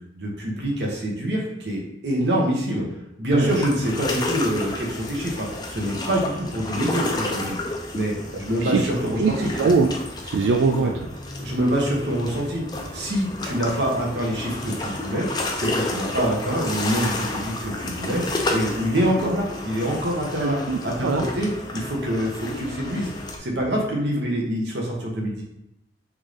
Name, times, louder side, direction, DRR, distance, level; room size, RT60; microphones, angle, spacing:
voice 1, 0.1-2.8 3.2-7.6 7.9-9.5 10.8-10.9 11.4-12.6 12.9-15.3 15.5-18.2 18.5-23.1 23.4-25.4, equal, 70° right, -1 dB, 1.1 m, -25 dB
voice 2, 3.3-3.6 8.6-8.9 9.2-9.9 10.2-10.9 20.4-21.3, right 4 dB, 85° right, 4 dB, 0.3 m, -22 dB
sound 1, 3.5-23.4, left 2 dB, 20° left, 0.5 m, -31 dB
3.7 x 3.6 x 3.3 m, 0.87 s
head